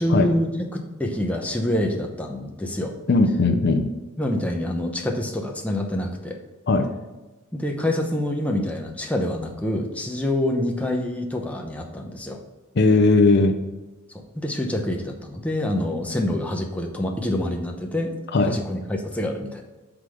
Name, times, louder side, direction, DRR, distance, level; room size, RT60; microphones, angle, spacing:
voice 1, 0.0-2.9 4.2-6.4 7.5-12.4 14.3-18.1 18.4-19.6, left 1 dB, 5° left, 2 dB, 0.7 m, -26 dB
voice 2, 3.1-3.9 6.7-6.9 12.8-13.5 18.3-18.6, left 3 dB, 50° left, 4 dB, 0.6 m, -18 dB
6.0 x 5.0 x 4.9 m, 1.2 s
head